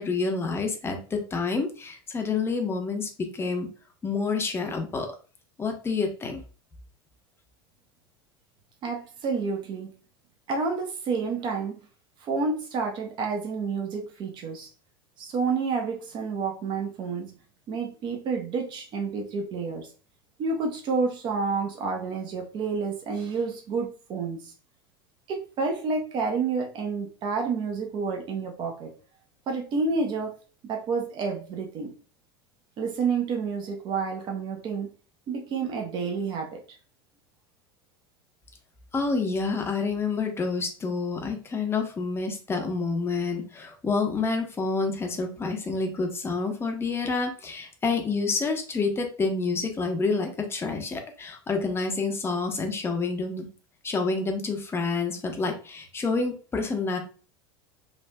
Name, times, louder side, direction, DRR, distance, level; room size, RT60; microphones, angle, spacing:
voice 1, 0.0-3.7 4.0-5.1 5.6-6.4 38.9-53.5 53.8-57.0, left 4 dB, 20° left, 4 dB, 0.7 m, -28 dB
voice 2, 8.8-9.9 10.5-11.7 12.2-14.7 15.2-17.3 17.7-19.9 20.4-24.5 25.3-28.9 29.5-30.4 30.6-31.9 32.8-34.9 35.3-36.8, right 4 dB, 35° right, 2 dB, 0.7 m, -29 dB
3.4 x 2.4 x 2.2 m, 0.38 s
figure-of-eight pair, 80°, 13 cm